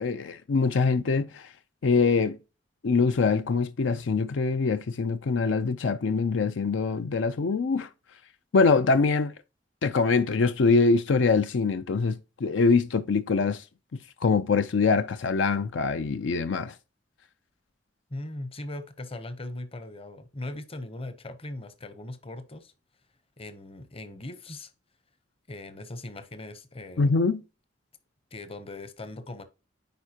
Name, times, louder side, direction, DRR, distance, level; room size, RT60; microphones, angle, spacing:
voice 1, 0.0-1.5 1.8-2.4 2.8-7.9 8.5-9.3 9.8-13.6 14.2-16.7 27.0-27.4, left 4 dB, 80° left, 0.5 m, -24 dB
voice 2, 18.1-22.7 23.4-24.7 25.5-27.1 28.3-29.4, left 2 dB, 30° left, 0.8 m, -39 dB
9.4 x 4.4 x 2.8 m
head